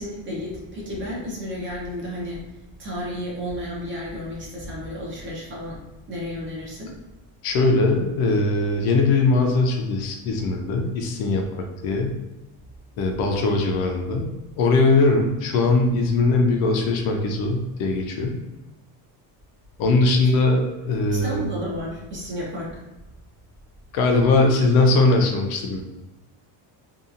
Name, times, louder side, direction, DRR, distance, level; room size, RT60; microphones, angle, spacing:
voice 1, 0.0-2.5 2.8-5.8 6.1-7.0 20.2-20.3 21.1-22.8, left 1 dB, 25° right, -4 dB, 0.6 m, -32 dB
voice 2, 7.4-12.2 13.0-14.3 14.6-18.4 19.8-21.4 23.9-25.8, left 3 dB, 55° left, 2 dB, 0.5 m, -20 dB
2.7 x 2.3 x 2.4 m, 1.1 s
cardioid pair, 160°, 45 cm